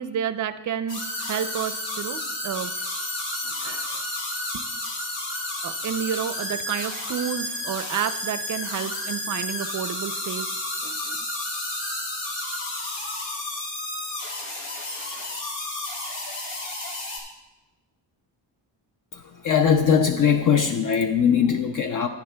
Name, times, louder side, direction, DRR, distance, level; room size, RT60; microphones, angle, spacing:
voice 1, 0.0-2.9 3.4-4.1 4.5-4.7 5.6-11.3, right 9 dB, 45° right, 12 dB, 0.4 m, -31 dB
sound 1, 0.9-17.2, left 1 dB, 80° left, 3.2 m, -31 dB
voice 2, 19.4-22.1, left 7 dB, 50° left, 6 dB, 0.5 m, -20 dB
15.5 x 10.0 x 2.2 m, 1.1 s
wide cardioid pair, 165°, 44 cm